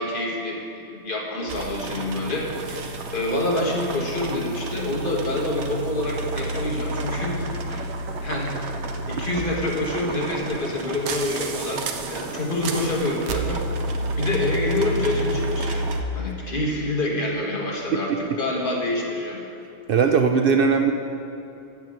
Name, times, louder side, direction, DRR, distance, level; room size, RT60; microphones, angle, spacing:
voice 1, 0.0-7.9 8.2-8.5 9.1-13.6 14.2-18.1 18.4-19.4, left 1 dB, 50° left, -2 dB, 1.6 m, -27 dB
sound 1, 1.5-16.0, right 2 dB, 80° right, 1.0 m, -30 dB
voice 2, 19.9-20.9, right 5 dB, 60° right, 6 dB, 0.7 m, -18 dB
7.9 x 7.0 x 7.8 m, 2.8 s
omnidirectional pair, 1.1 m